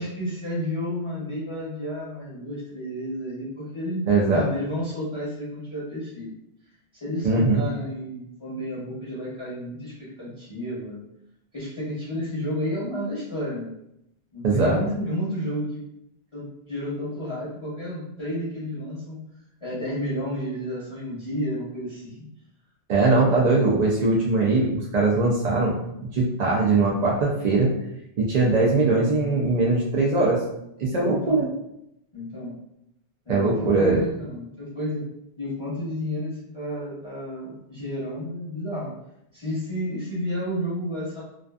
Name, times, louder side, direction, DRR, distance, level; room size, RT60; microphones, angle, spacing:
voice 1, 0.0-4.0 4.3-6.3 7.0-11.0 11.5-13.7 14.3-15.8 16.3-19.2 19.6-22.1 30.9-31.5 32.1-32.5 33.3-35.0 35.4-38.9 39.3-41.2, equal, 35° left, -9 dB, 0.6 m, -31 dB
voice 2, 4.1-4.4 7.2-7.6 14.4-14.8 22.9-25.7 26.1-27.7 28.2-30.4 30.8-31.5 33.3-34.0, right 3 dB, 55° right, -4 dB, 0.5 m, -21 dB
2.4 x 2.4 x 2.3 m, 0.81 s
omnidirectional pair, 1.1 m